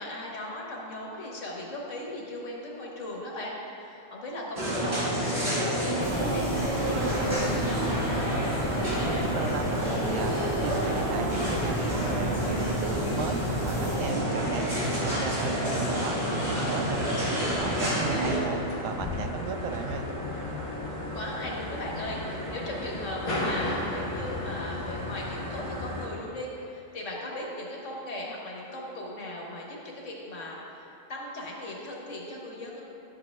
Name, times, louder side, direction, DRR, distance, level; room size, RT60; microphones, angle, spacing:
voice 1, 0.0-8.3 15.4-16.0 21.1-32.8, left 1 dB, 85° left, -2 dB, 1.6 m, -38 dB
sound 1, 4.6-18.4, right 1 dB, 60° right, 2.2 m, -29 dB
sound 2, 6.0-14.1, right 1 dB, 25° right, 1.8 m, -36 dB
sound 3, 6.9-26.1, left 1 dB, 25° left, 1.1 m, -35 dB
voice 2, 9.0-11.8 12.1-14.7 15.0-20.1, right 6 dB, 90° right, 6 dB, 0.9 m, -36 dB
11.5 x 7.8 x 2.3 m, 2.9 s
omnidirectional pair, 1.3 m